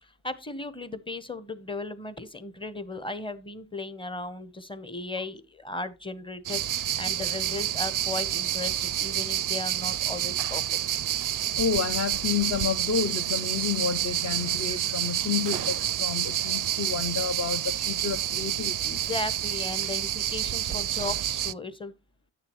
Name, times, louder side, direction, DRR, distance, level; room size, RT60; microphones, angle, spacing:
voice 1, 0.0-10.8 18.9-21.9, left 2 dB, 10° left, 1.0 m, -36 dB
sound 1, 6.4-21.5, right 11 dB, 45° right, 0.5 m, -29 dB
voice 2, 11.6-19.0, left 6 dB, 35° left, 0.7 m, -30 dB
9.3 x 6.8 x 3.1 m
supercardioid pair, 40°, 46 cm